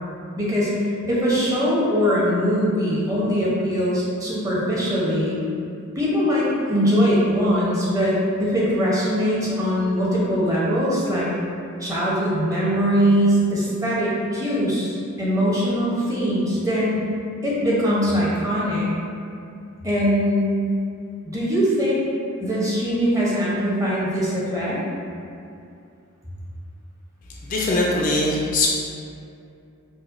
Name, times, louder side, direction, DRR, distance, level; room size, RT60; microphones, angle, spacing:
voice 1, 0.4-5.4 6.0-11.3 11.8-17.1 17.4-18.9 19.8-20.5 21.3-22.0 22.4-24.8, equal, 15° right, -7 dB, 0.7 m, -21 dB
voice 2, 27.4-28.7, left 2 dB, 40° left, -3 dB, 0.4 m, -21 dB
4.8 x 2.1 x 2.5 m, 2.5 s
head